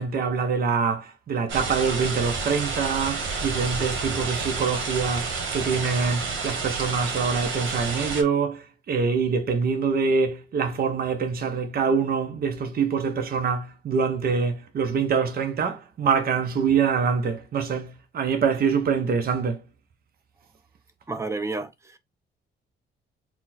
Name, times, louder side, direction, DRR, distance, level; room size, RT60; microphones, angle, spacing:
voice 1, 0.0-19.6, right 5 dB, 50° right, 0.8 m, -25 dB
sound 1, 1.5-8.2, right 4 dB, 75° right, 1.4 m, -30 dB
voice 2, 21.1-22.0, right 3 dB, 15° right, 0.7 m, -31 dB
4.2 x 2.2 x 4.2 m
cardioid pair, 90°, 20 cm